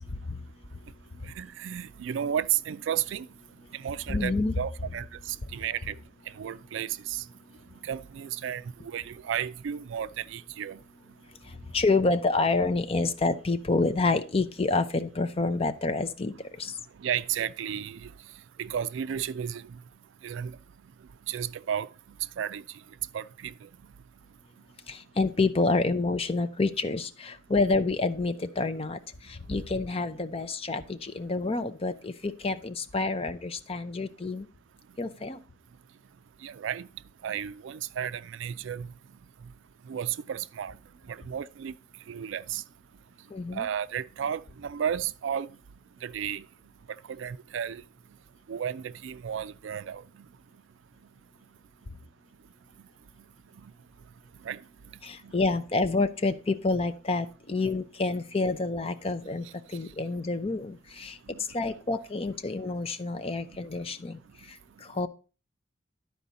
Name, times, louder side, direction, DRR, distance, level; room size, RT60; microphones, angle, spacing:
voice 1, 1.4-3.3 3.7-5.9 6.4-7.2 7.8-10.8 17.0-18.1 18.6-19.6 20.2-20.6 21.3-21.9 22.4-22.6 23.1-23.5 36.4-36.9 37.2-38.9 39.9-40.8 41.1-41.7 42.1-42.6 43.5-45.5 46.0-46.4 47.2-47.8 48.5-50.0 54.4-54.6, right 9 dB, 70° right, 0.3 m, -33 dB
voice 2, 4.1-4.6 11.5-16.7 24.9-34.5 35.0-35.4 43.3-43.7 55.0-59.5 59.7-61.2 61.5-64.2 64.5-65.1, left 3 dB, 30° left, 0.5 m, -28 dB
11.5 x 4.7 x 4.0 m
head